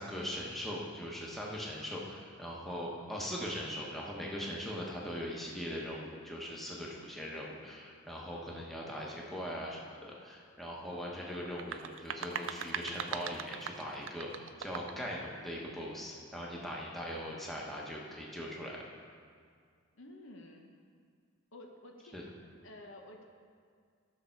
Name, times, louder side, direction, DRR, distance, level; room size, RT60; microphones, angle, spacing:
voice 1, 0.0-18.8 22.1-22.2, equal, ahead, -4 dB, 1.2 m, -40 dB
sound 1, 11.4-15.1, right 7 dB, 65° right, 0.5 m, -40 dB
voice 2, 19.9-20.7 21.5-22.3 22.6-23.2, left 1 dB, 65° left, 2 dB, 1.0 m, -51 dB
13.5 x 6.8 x 4.6 m, 2.1 s
head